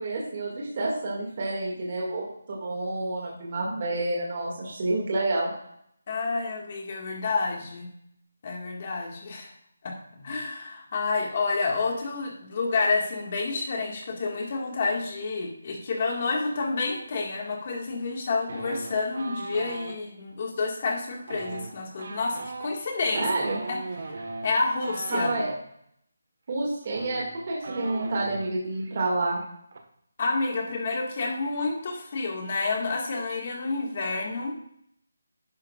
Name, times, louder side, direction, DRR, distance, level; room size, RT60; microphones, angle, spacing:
voice 1, 0.0-5.5 23.1-23.6 25.1-25.5 26.5-29.4, right 2 dB, 30° right, -3 dB, 2.0 m, -29 dB
voice 2, 6.1-7.9 8.4-9.5 9.8-23.3 23.7-23.8 24.1-24.2 24.4-25.3 30.2-34.5, left 3 dB, 30° left, 1 dB, 1.7 m, -29 dB
sound 1, 18.5-20.0 21.2-25.6 26.5-26.6 26.8-28.5 28.8-29.0 29.3-29.8, right 3 dB, 45° right, 1.3 m, -38 dB
11.5 x 10.5 x 2.4 m, 0.71 s
hypercardioid pair, 175°, 0 cm